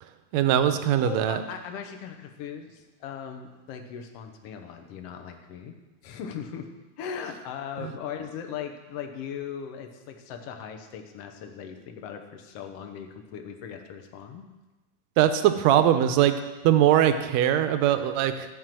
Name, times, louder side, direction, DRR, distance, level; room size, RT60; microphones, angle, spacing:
voice 1, 0.3-1.4 7.8-7.9 15.2-16.3 16.6-18.6, right 11 dB, 75° right, 9 dB, 1.8 m, -21 dB
voice 2, 1.0-5.8 6.0-14.5, left 7 dB, 65° left, 5 dB, 1.9 m, -38 dB
14.0 x 5.6 x 7.5 m, 1.1 s
omnidirectional pair, 3.4 m